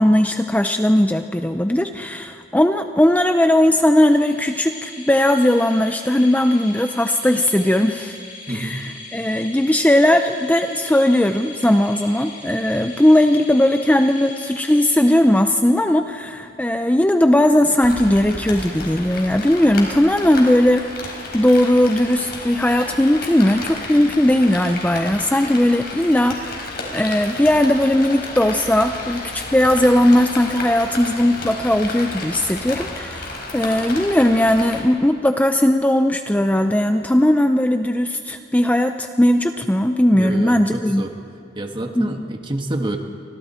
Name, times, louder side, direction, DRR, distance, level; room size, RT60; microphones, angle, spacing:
voice 1, 0.0-8.2 8.5-20.8 21.3-41.0 42.0-42.3, left 1 dB, 10° left, 7 dB, 0.6 m, -18 dB
sound 1, 3.9-15.8, left 2 dB, 45° left, 6.9 m, -39 dB
voice 2, 8.5-8.8 40.1-41.1 41.6-43.0, right 1 dB, 30° right, 4 dB, 1.8 m, -28 dB
Rain, 17.8-34.8, left 2 dB, 60° left, 4.7 m, -32 dB
29.5 x 25.0 x 4.4 m, 2.5 s
head